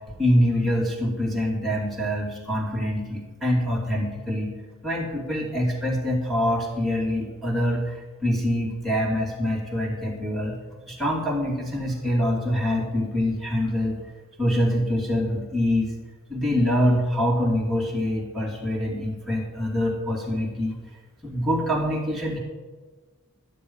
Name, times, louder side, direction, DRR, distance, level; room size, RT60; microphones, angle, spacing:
voice 1, 0.1-4.5 4.8-10.6 10.9-14.0 14.4-15.9 16.3-20.8 21.2-22.4, equal, ahead, -3 dB, 2.8 m, -25 dB
12.5 x 10.0 x 5.5 m, 1.4 s
head